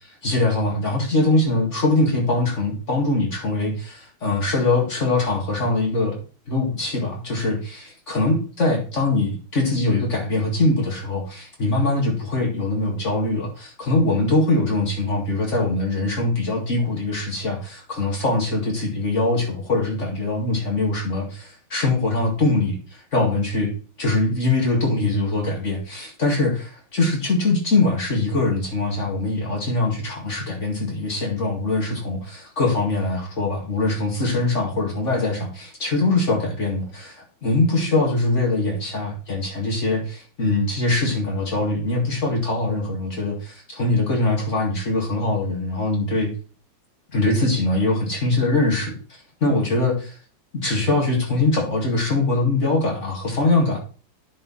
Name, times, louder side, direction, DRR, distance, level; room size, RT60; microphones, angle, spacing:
voice 1, 0.2-6.2 6.5-23.7 24.0-46.3 47.1-48.9 49.4-50.2 50.5-53.8, left 2 dB, 35° left, -1 dB, 2.4 m, -22 dB
10.0 x 4.6 x 4.1 m, 0.39 s
omnidirectional pair, 2.4 m